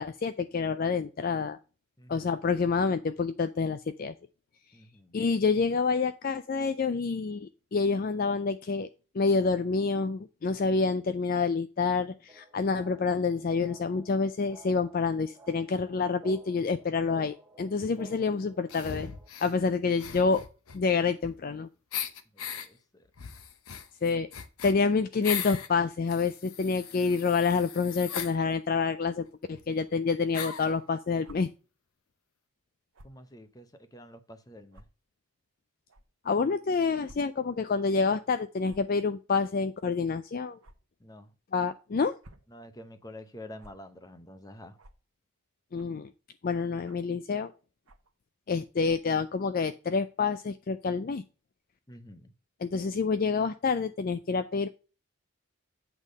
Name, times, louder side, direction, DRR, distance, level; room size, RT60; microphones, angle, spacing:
voice 1, 0.0-1.6 2.1-4.1 5.1-8.9 9.1-19.1 19.4-20.4 20.7-21.7 24.0-24.3 24.6-31.5 36.2-40.6 41.5-42.2 45.7-46.1 46.4-47.5 48.5-51.2 52.6-54.7, left 4 dB, 40° left, 0.4 m, -28 dB
voice 2, 2.0-2.3 4.7-5.2 22.3-23.1 33.0-34.8 41.0-41.3 42.5-44.8 51.9-52.3, left 1 dB, 15° left, 0.8 m, -48 dB
sound 1, 12.3-19.3, right 1 dB, 10° right, 2.1 m, -53 dB
sound 2, 18.7-19.5 20.0-21.6 21.9-22.7 23.2-25.7 26.1-28.3 29.2-29.3 29.5-29.6 30.3-30.7, left 8 dB, 80° left, 0.8 m, -38 dB
sound 3, 31.2-31.4 32.9-33.2 33.9-34.0 34.7-34.8 35.9-36.0 37.0-37.2 37.5-37.6 38.6-38.9 40.6-40.8 42.0-42.5 43.6-43.7 44.8-45.0 45.7-46.0 46.8-47.1 47.9-48.1 48.8-49.1, right 1 dB, 80° right, 1.1 m, -53 dB
8.3 x 3.6 x 6.4 m
head